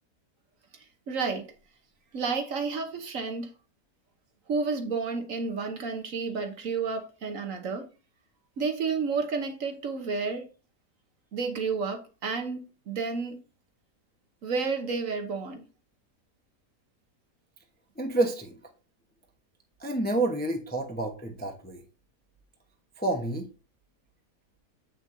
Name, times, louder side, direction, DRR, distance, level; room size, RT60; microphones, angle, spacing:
voice 1, 1.1-1.4 2.1-3.5 4.5-7.8 8.6-10.4 11.3-12.6 12.9-13.4 14.4-15.6, right 4 dB, 55° right, 1.3 m, -31 dB
voice 2, 18.0-18.6 19.8-21.8 23.0-23.5, right 2 dB, 10° left, 0.6 m, -29 dB
7.8 x 6.4 x 2.6 m
omnidirectional pair, 1.7 m